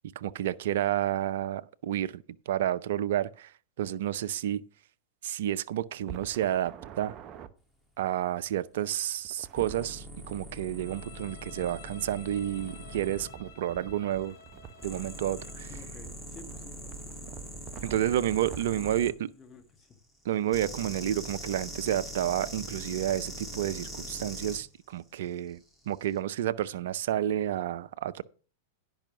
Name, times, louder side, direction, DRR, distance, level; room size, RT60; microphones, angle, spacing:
voice 1, 0.2-3.5 3.8-4.6 5.2-7.1 8.0-14.4 14.8-15.7 17.8-19.1 20.3-25.6 25.9-28.2, right 11 dB, 65° right, 0.5 m, -30 dB
sound 1, 6.0-7.5 9.2-9.9 12.6-19.0, right 9 dB, 40° right, 0.8 m, -47 dB
sound 2, 9.5-13.3 14.8-19.1 20.5-24.6 25.8-26.1, equal, ahead, 1.8 m, -42 dB
Bowed string instrument, 10.8-15.7, left 8 dB, 50° left, 2.4 m, -52 dB
voice 2, 15.7-17.3 18.8-20.0, left 4 dB, 25° left, 1.5 m, -52 dB
10.5 x 5.5 x 5.9 m
hypercardioid pair, 100°, 0 cm